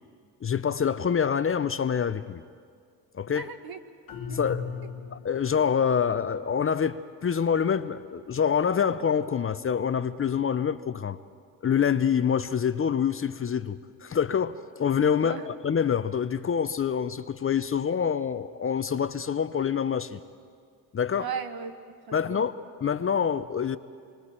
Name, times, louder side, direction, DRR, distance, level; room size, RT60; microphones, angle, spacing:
voice 1, 0.4-2.4 3.1-3.5 4.3-4.7 5.1-11.2 11.6-20.2 20.9-21.3 22.1-22.5 22.8-23.8, left 7 dB, 30° left, 13 dB, 0.6 m, -26 dB
voice 2, 3.3-3.8 4.3-4.5 15.2-15.5 21.1-22.5, right 6 dB, 60° right, 8 dB, 1.5 m, -37 dB
sound 1, 4.1-5.6, left 6 dB, 50° left, 1.4 m, -36 dB
26.5 x 24.0 x 4.4 m, 2.1 s
cardioid pair, 90°, 42 cm